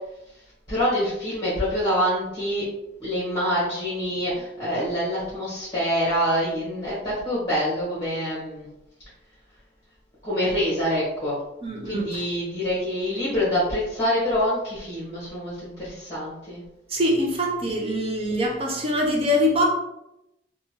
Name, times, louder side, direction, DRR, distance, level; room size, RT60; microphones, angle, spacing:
voice 1, 0.7-2.6 3.0-8.7 10.2-11.3 11.8-16.6, equal, 20° left, -9 dB, 1.1 m, -26 dB
voice 2, 11.6-12.2 16.9-19.7, equal, 30° right, -1 dB, 0.6 m, -24 dB
2.8 x 2.3 x 2.9 m, 0.86 s
head